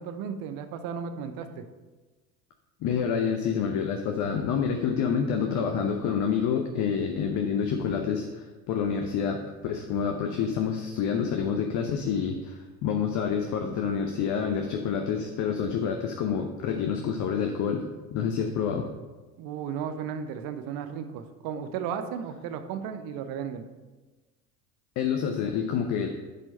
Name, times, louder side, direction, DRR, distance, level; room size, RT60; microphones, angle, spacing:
voice 1, 0.0-1.7 19.4-23.6, right 7 dB, 50° right, 8 dB, 0.9 m, -34 dB
voice 2, 2.8-17.9 18.1-18.8 25.0-26.1, left 7 dB, 40° left, 4 dB, 0.8 m, -28 dB
9.8 x 4.5 x 4.3 m, 1.2 s
figure-of-eight pair, 70°, 45 cm